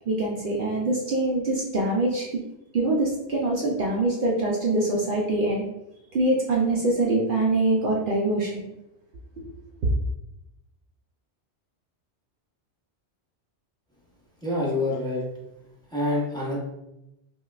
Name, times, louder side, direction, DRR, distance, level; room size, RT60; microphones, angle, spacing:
voice 1, 0.1-2.3 2.7-5.7 6.1-8.6 9.4-9.5, right 2 dB, 60° right, -2 dB, 0.7 m, -24 dB
voice 2, 14.4-15.2 15.9-16.6, left 2 dB, 5° left, -6 dB, 0.8 m, -26 dB
5.1 x 2.3 x 2.3 m, 0.89 s
omnidirectional pair, 1.1 m